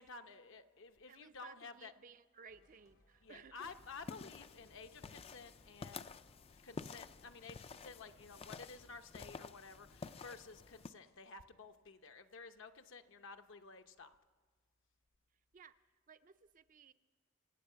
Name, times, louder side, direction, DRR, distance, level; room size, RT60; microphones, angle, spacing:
voice 1, 0.0-1.9 3.2-6.2 6.6-14.1, left 4 dB, 65° left, 8 dB, 0.8 m, -53 dB
voice 2, 1.1-3.6 15.5-15.7 16.1-16.9, right 6 dB, 40° right, 11 dB, 0.4 m, -58 dB
sound 1, 2.5-11.5, left 2 dB, 85° left, 2.3 m, -72 dB
sound 2, 3.6-10.9, left 4 dB, 30° left, 0.4 m, -51 dB
26.5 x 8.8 x 5.6 m, 1.5 s
head